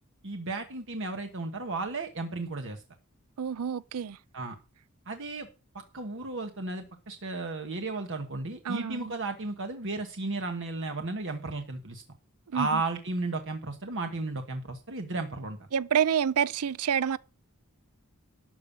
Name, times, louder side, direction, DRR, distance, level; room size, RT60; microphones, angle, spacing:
voice 1, 0.2-2.8 4.3-4.6 5.1-5.5 5.7-12.0 12.5-15.6, right 3 dB, 60° right, 1.3 m, -34 dB
voice 2, 3.4-4.2 8.7-9.1 12.5-12.8 15.7-17.2, right 8 dB, 80° right, 0.5 m, -28 dB
12.5 x 5.4 x 8.4 m
head